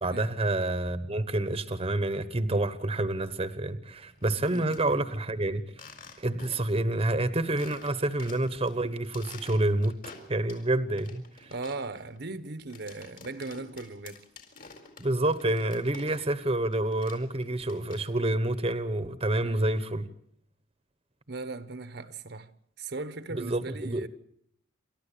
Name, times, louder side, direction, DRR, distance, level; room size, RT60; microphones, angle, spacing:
voice 1, 0.0-5.6 6.2-10.0 10.3-11.5 15.0-20.1 23.3-24.1, right 1 dB, 30° right, 1.1 m, -28 dB
sound 1, 4.1-4.8 5.7-6.8 7.1-7.2 7.6-8.7 9.0-10.7 11.0-16.5 16.7-18.3, left 4 dB, 45° left, 4.3 m, -49 dB
voice 2, 4.5-5.0 11.5-14.2 19.4-19.7 21.3-22.5 22.8-24.1, right 3 dB, 55° right, 1.1 m, -38 dB
28.5 x 13.0 x 8.4 m
head